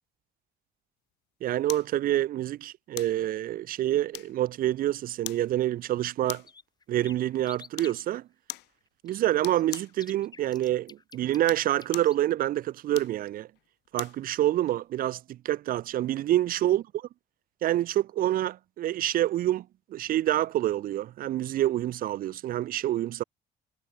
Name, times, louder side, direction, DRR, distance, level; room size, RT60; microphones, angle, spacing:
voice 1, 1.4-6.4 6.9-8.3 9.0-13.5 13.9-16.8 17.6-19.7 19.9-23.2, right 13 dB, 60° right, 0.6 m, -27 dB
sound 1, 1.7-1.9 3.0-3.2 4.1-4.6 5.2-5.5 6.3-6.6 7.7-8.0 8.5-8.7 9.4-10.0 11.3-12.2 12.9-14.2 14.7-14.8, left 18 dB, 85° left, 2.4 m, -40 dB
sound 2, 6.1-6.2 6.5-8.0 9.1-12.2, left 4 dB, 25° left, 3.2 m, -49 dB
cardioid pair, 110°, 17 cm